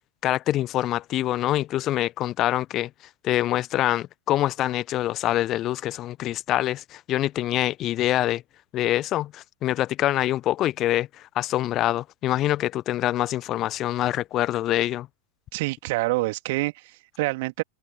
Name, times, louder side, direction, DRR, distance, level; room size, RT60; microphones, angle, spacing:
voice 1, 0.2-2.9 3.2-8.4 8.7-15.1, left 14 dB, 35° left, 1.2 m, -25 dB
voice 2, 15.5-17.6, right 22 dB, 50° right, 2.6 m, -27 dB
figure-of-eight pair, 90°, 0 cm